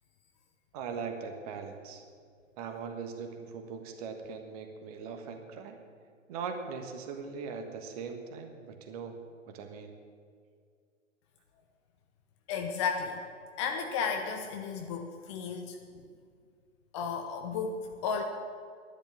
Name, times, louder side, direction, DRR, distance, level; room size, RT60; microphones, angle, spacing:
voice 1, 0.7-2.0 2.6-5.8 6.3-9.9, right 5 dB, 30° right, 5 dB, 1.4 m, -40 dB
voice 2, 12.5-13.2 13.6-16.0 16.9-18.2, left 5 dB, 20° left, 4 dB, 0.8 m, -34 dB
12.0 x 10.5 x 8.5 m, 2.1 s
figure-of-eight pair, 120°, 39 cm